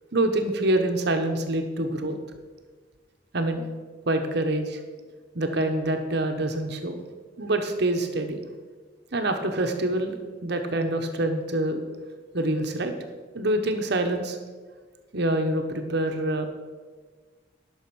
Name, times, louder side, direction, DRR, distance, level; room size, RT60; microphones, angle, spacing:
voice 1, 0.1-2.2 3.3-3.7 4.1-4.8 5.3-7.0 7.4-8.4 9.1-11.8 12.3-12.9 13.3-14.4 15.1-16.5, right 1 dB, 60° right, 5 dB, 1.1 m, -26 dB
12.0 x 6.4 x 6.2 m, 1.4 s
head